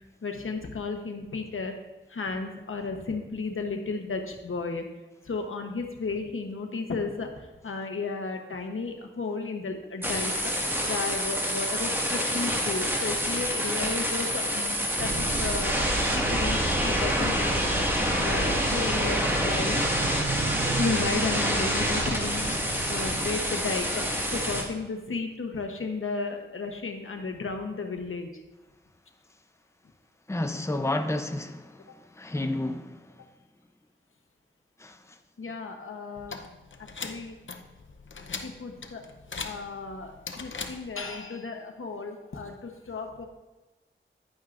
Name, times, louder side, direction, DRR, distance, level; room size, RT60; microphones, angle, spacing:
voice 1, 0.0-1.8 2.1-4.8 5.2-10.5 10.8-17.9 18.2-19.8 20.8-28.3 35.4-36.4 36.8-37.3 38.4-39.0 39.4-43.3, left 4 dB, 90° left, 1.0 m, -34 dB
sound 1, 10.0-24.6, equal, 10° right, 1.8 m, -27 dB
sound 2, 15.0-23.2, right 4 dB, 45° right, 0.6 m, -33 dB
voice 2, 30.3-33.3 34.8-35.2, left 1 dB, 15° left, 0.7 m, -31 dB
sound 3, 36.2-41.2, left 4 dB, 70° left, 0.7 m, -40 dB
10.0 x 9.0 x 2.5 m
wide cardioid pair, 55°, 21 cm